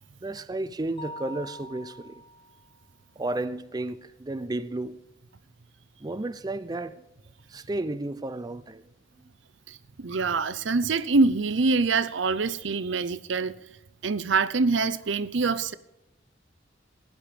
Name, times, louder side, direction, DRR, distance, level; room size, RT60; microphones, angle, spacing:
voice 1, 0.2-2.1 3.2-5.0 6.0-6.9 7.5-8.8, right 2 dB, 20° right, 0.5 m, -32 dB
Mallet percussion, 1.0-2.8, equal, 30° left, 0.9 m, -43 dB
voice 2, 9.7-13.6 14.0-15.7, right 4 dB, 70° right, 0.7 m, -25 dB
16.5 x 10.5 x 5.0 m
head